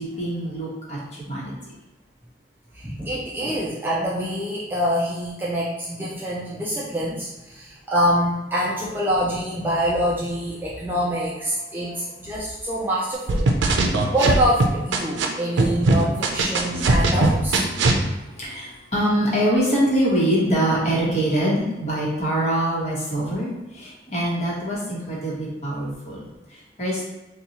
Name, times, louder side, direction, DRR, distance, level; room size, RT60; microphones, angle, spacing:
voice 1, 0.0-1.5 11.6-12.0 18.0-27.0, right 1 dB, 35° left, -6 dB, 1.0 m, -24 dB
voice 2, 2.7-13.4 13.8-17.7, equal, 10° right, -6 dB, 0.4 m, -25 dB
sound 1, 13.3-15.3 15.6-18.0, right 2 dB, 85° right, 0.5 m, -19 dB
4.1 x 2.3 x 2.8 m, 1.1 s
head